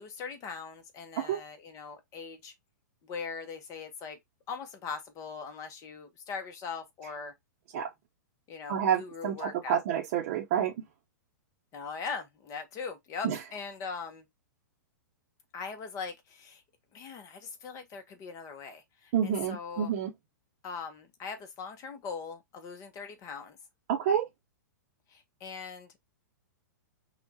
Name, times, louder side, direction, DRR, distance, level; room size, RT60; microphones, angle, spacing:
voice 1, 0.0-2.5 3.0-4.2 4.5-7.3 8.5-9.8 11.7-14.3 15.5-16.6 16.9-19.9 20.6-23.6 25.1-25.9, left 5 dB, 30° left, 1.2 m, -40 dB
voice 2, 8.7-10.7 13.2-13.4 19.1-20.1 23.9-24.3, right 8 dB, 50° right, 0.9 m, -28 dB
5.6 x 2.5 x 2.7 m
hypercardioid pair, 120°, 10 cm